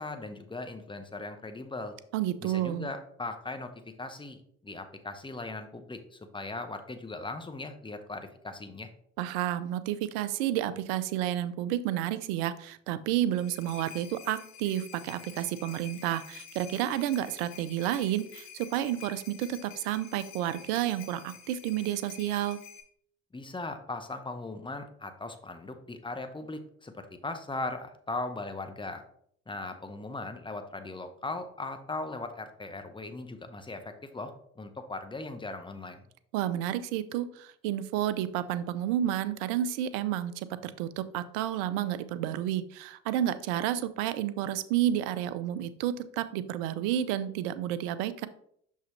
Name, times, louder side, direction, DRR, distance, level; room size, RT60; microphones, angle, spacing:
voice 1, 0.0-2.0 2.4-3.7 4.0-8.9 23.3-29.0 29.5-36.0, left 2 dB, 15° left, 8 dB, 1.0 m, -39 dB
voice 2, 2.1-2.9 9.2-22.6 36.3-48.3, right 12 dB, 85° right, 14 dB, 0.5 m, -30 dB
sound 1, 13.1-22.8, left 8 dB, 80° left, 1.0 m, -49 dB
6.0 x 5.5 x 3.1 m, 0.66 s
hypercardioid pair, 55°, 34 cm